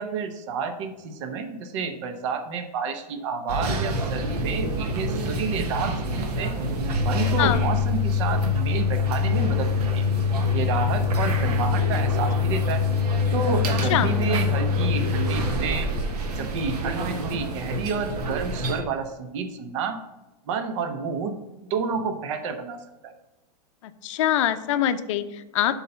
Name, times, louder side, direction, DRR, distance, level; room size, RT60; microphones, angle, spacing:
voice 1, 0.0-6.6 6.9-10.0 10.5-12.8 13.3-15.9 16.4-20.0 20.5-21.4 21.7-23.1, right 5 dB, 50° right, 7 dB, 0.8 m, -30 dB
sound 1, 3.5-18.8, left 3 dB, 75° right, 1.4 m, -25 dB
voice 2, 24.0-25.8, left 11 dB, 50° left, 11 dB, 0.6 m, -24 dB
8.3 x 4.1 x 5.6 m, 1.0 s
supercardioid pair, 165°, 20 cm